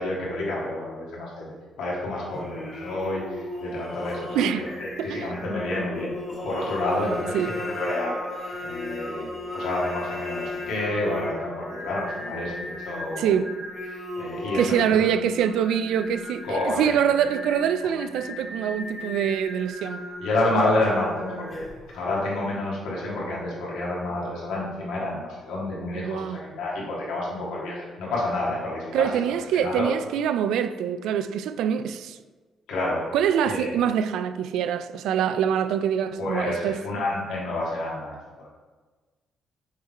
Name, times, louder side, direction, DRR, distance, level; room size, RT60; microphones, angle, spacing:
voice 1, 0.0-6.1 6.4-13.3 13.9-15.1 16.4-16.9 20.2-29.1 29.5-29.9 32.7-33.1 33.4-33.8 36.2-38.5, left 2 dB, 85° left, 1.9 m, -29 dB
Singing, 2.3-21.9, left 1 dB, 25° left, 1.6 m, -37 dB
voice 2, 4.3-4.7 5.0-5.4 7.3-7.5 13.2-13.6 14.5-20.0 26.0-26.4 28.9-32.2 33.1-36.8, right 8 dB, 85° right, 0.3 m, -25 dB
6.4 x 3.7 x 4.2 m
cardioid pair, 90°, 0 cm